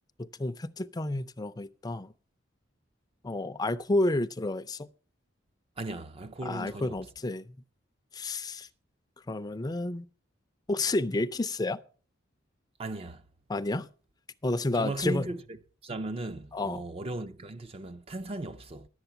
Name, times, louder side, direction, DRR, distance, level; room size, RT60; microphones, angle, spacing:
voice 1, 0.2-2.1 3.2-4.9 6.4-7.6 8.1-8.7 9.3-10.1 10.7-11.8 13.5-13.9 14.4-15.3 16.5-16.8, left 2 dB, 20° left, 0.5 m, -30 dB
voice 2, 5.8-7.0 12.8-13.2 14.7-15.4 15.8-18.9, right 2 dB, 30° right, 0.5 m, -36 dB
11.0 x 8.0 x 5.7 m
head